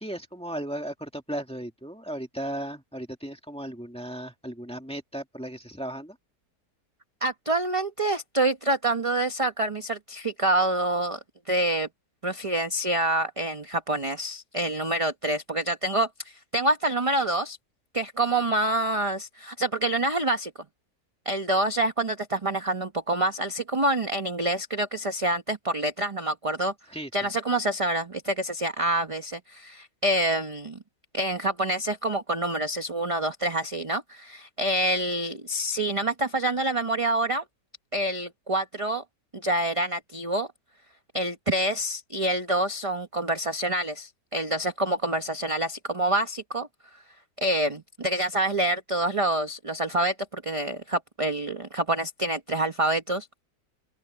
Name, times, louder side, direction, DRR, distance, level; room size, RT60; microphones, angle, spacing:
voice 1, 0.0-6.2 26.9-27.3, right 1 dB, 5° left, 1.8 m, -36 dB
voice 2, 7.2-11.2 11.5-11.9 12.2-17.6 17.9-20.5 21.2-26.7 27.1-30.8 31.1-37.4 37.9-39.0 39.3-40.5 41.1-46.7 47.4-53.3, right 1 dB, 20° right, 1.1 m, -27 dB
open air
omnidirectional pair, 1.8 m